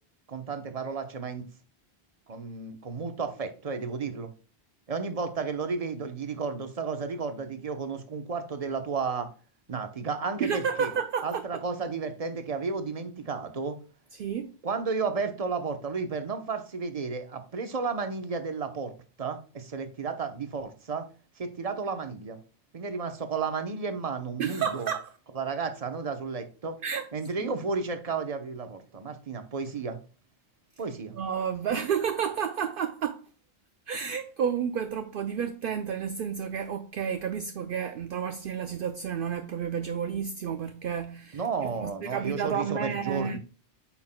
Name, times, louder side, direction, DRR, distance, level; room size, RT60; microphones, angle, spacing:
voice 1, 0.3-1.5 2.3-4.3 4.9-9.3 9.7-10.9 11.2-13.8 14.6-18.9 19.2-21.1 21.4-22.4 22.7-24.9 25.3-26.8 27.1-30.0 30.8-31.2 41.3-43.4, right 5 dB, 35° right, 0.9 m, -32 dB
voice 2, 10.4-11.4 14.1-14.5 24.4-25.1 26.8-27.1 27.4-27.5 31.1-33.3 33.9-41.4 41.8-43.4, right 7 dB, 60° right, 0.7 m, -31 dB
8.5 x 5.8 x 2.2 m
omnidirectional pair, 1.1 m